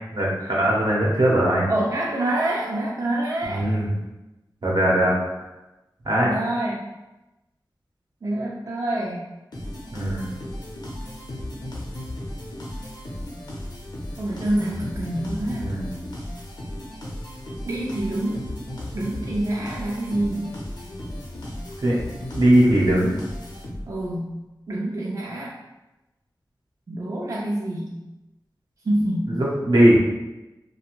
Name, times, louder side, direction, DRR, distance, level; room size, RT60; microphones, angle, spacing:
voice 1, 0.1-1.7 3.5-3.9 4.6-5.1 6.0-6.3 9.9-10.3 15.6-15.9 21.8-22.0 22.3-23.1 29.3-30.0, right 1 dB, 75° right, -4 dB, 0.7 m, -19 dB
voice 2, 1.7-3.7 6.2-6.9 8.2-9.3 14.2-15.7 17.6-18.5 18.9-20.6 23.9-24.3 24.7-25.6 26.9-28.0 28.8-29.4, right 1 dB, 45° right, -4 dB, 0.4 m, -27 dB
sound 1, 9.5-24.1, left 1 dB, 65° left, 0.6 m, -35 dB
2.4 x 2.2 x 3.0 m, 1.0 s
wide cardioid pair, 85°, 8 cm